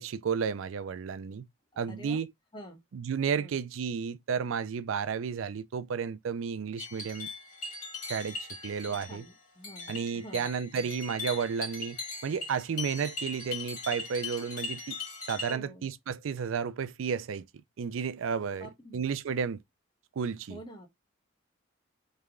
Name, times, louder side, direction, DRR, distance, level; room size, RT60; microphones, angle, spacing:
voice 1, 0.0-1.5 1.8-2.3 2.9-7.3 8.1-8.4 8.6-9.2 9.9-15.0 15.3-17.5 17.8-18.7 18.9-19.6 20.2-20.6, right 6 dB, 85° right, 0.4 m, -32 dB
voice 2, 1.7-2.2 2.5-2.8 3.3-3.5 8.9-10.5 10.7-10.9 15.5-15.9 18.6-19.0 20.5-20.9, equal, 25° left, 1.1 m, -47 dB
sound 1, 6.8-15.6, left 3 dB, 40° left, 2.1 m, -40 dB
3.3 x 3.3 x 3.6 m
head